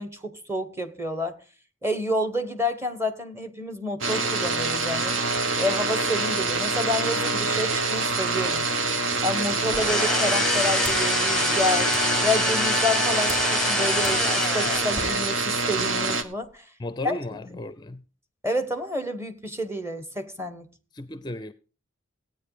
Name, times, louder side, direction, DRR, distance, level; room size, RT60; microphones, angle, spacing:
voice 1, 0.0-1.4 1.8-5.1 5.6-8.6 9.2-11.9 12.2-16.6 17.0-17.2 17.4-17.6 18.4-20.6, left 1 dB, 15° right, 1.4 m, -29 dB
sound 1, 4.0-16.2, right 3 dB, 70° right, 1.4 m, -26 dB
sound 2, 9.5-15.0, equal, 40° right, 4.0 m, -45 dB
sound 3, 9.7-15.3, left 3 dB, 5° left, 1.0 m, -26 dB
voice 2, 16.8-18.0 20.9-21.5, left 1 dB, 20° left, 0.5 m, -34 dB
16.0 x 9.2 x 5.0 m
head